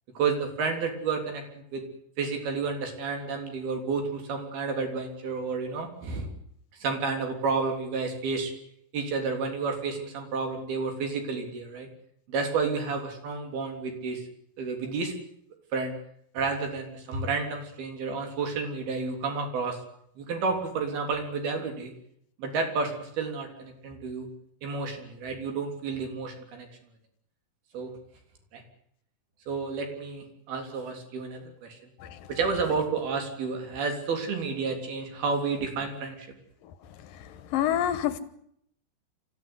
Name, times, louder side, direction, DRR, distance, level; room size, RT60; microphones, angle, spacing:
voice 1, 0.2-1.8 2.2-6.3 6.8-8.5 8.9-11.9 12.3-14.2 14.6-15.1 15.7-15.9 16.3-19.8 20.2-21.9 22.4-24.3 24.6-26.7 27.7-27.9 28.5-28.6 29.5-31.8 32.3-36.3, right 4 dB, 65° right, 4 dB, 5.3 m, -31 dB
voice 2, 37.5-38.2, left 11 dB, 65° left, 13 dB, 2.6 m, -26 dB
27.0 x 15.0 x 9.7 m, 0.72 s
omnidirectional pair, 4.8 m